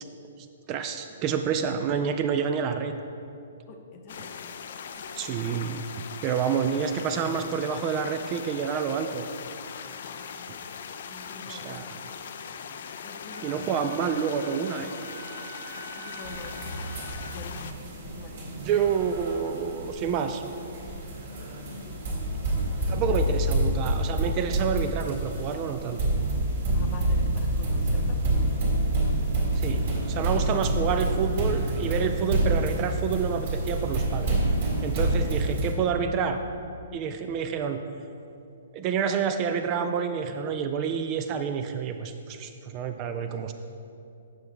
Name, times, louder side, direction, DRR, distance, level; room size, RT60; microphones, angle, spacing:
voice 1, 0.7-2.9 5.2-5.8 6.2-9.3 11.5-12.0 13.4-14.9 18.7-20.4 22.9-26.0 29.6-34.4 34.8-36.4 36.9-37.8 38.7-43.5, right 7 dB, 30° right, 7 dB, 0.3 m, -28 dB
voice 2, 3.7-4.3 5.0-5.1 10.0-10.5 11.1-11.7 12.3-12.6 13.0-14.1 15.6-16.6 17.3-18.8 21.8-22.0 23.0-23.2 26.7-28.2 35.7-36.4, left 3 dB, 30° left, 3 dB, 0.7 m, -45 dB
sound 1, 4.1-17.7, left 7 dB, 50° left, 0.4 m, -40 dB
Wind instrument woodwind instrument, 13.3-17.4, right 6 dB, 70° right, 0.6 m, -46 dB
sound 2, 16.2-35.7, right 1 dB, 45° right, 1.7 m, -27 dB
9.2 x 6.6 x 3.5 m, 2.7 s
figure-of-eight pair, 120°, 0 cm